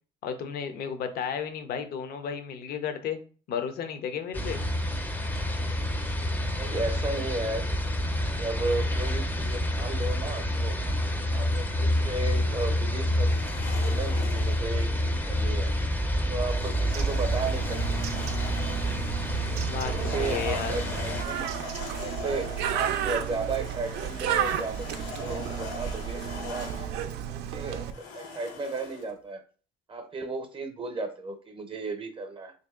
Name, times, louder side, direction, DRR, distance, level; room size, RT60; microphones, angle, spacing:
voice 1, 0.2-3.2 3.5-4.6 19.6-20.7, left 7 dB, 65° left, 8 dB, 0.6 m, -33 dB
sound 1, 4.3-21.2, equal, 10° left, 0.5 m, -28 dB
voice 2, 6.6-7.7 8.3-10.8 11.3-13.3 13.7-15.7 16.3-18.2 19.9-21.5 22.0-24.9 25.2-26.7 27.3-29.4 29.9-32.5, right 3 dB, 30° right, 5 dB, 0.6 m, -34 dB
sound 2, 13.2-14.7 16.4-19.0 19.8-27.0 27.9-29.1, left 5 dB, 85° left, 1.0 m, -42 dB
Bird, 16.9-27.9, right 9 dB, 75° right, 0.4 m, -33 dB
2.9 x 2.7 x 3.6 m, 0.38 s
cardioid pair, 110°, 17 cm